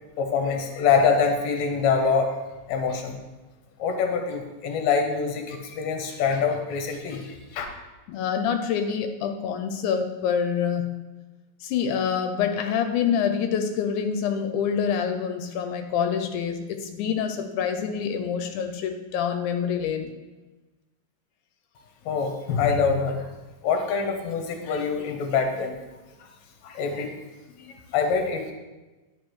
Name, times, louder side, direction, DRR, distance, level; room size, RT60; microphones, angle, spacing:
voice 1, 0.2-2.4 2.7-3.2 3.8-7.7 22.1-23.3 23.6-25.8 26.2-26.3 26.6-27.1 27.5-28.5, left 5 dB, 70° left, 4 dB, 2.1 m, -25 dB
voice 2, 8.1-11.0 11.6-20.1, left 7 dB, 90° left, 6 dB, 2.0 m, -26 dB
10.0 x 4.9 x 3.0 m, 1.1 s
omnidirectional pair, 3.4 m